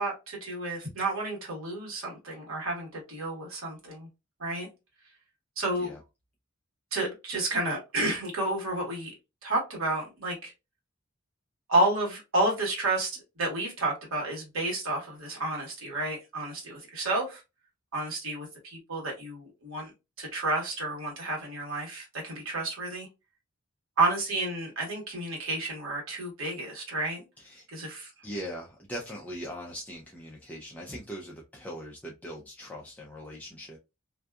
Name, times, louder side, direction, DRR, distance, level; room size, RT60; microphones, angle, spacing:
voice 1, 0.0-4.1 4.4-4.7 5.6-5.9 6.9-9.1 9.4-10.5 11.7-17.4 17.9-19.9 20.2-23.1 24.0-27.2 27.7-28.1, right 2 dB, 70° right, 1.3 m, -31 dB
voice 2, 28.2-33.8, equal, 5° left, 0.4 m, -40 dB
2.6 x 2.3 x 2.2 m
head